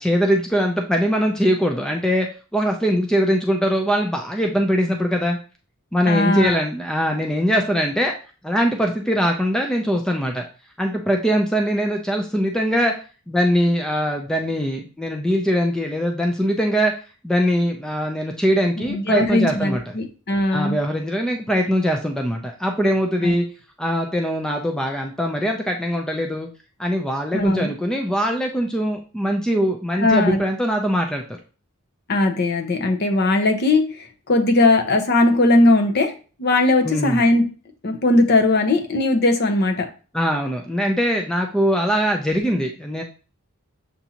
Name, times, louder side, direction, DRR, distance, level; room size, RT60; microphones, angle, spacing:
voice 1, 0.0-2.3 2.5-5.4 5.9-8.1 8.4-10.5 10.8-13.0 13.3-16.9 17.2-19.9 20.5-23.4 23.8-26.5 26.8-31.2 36.8-37.2 40.1-43.0, equal, 5° left, 2 dB, 0.3 m, -22 dB
voice 2, 6.1-6.6 18.8-20.8 23.2-23.3 27.3-27.7 30.0-30.4 32.1-36.1 36.4-37.5 37.8-39.9, left 2 dB, 45° left, 5 dB, 0.7 m, -19 dB
6.9 x 2.6 x 2.8 m, 0.36 s
head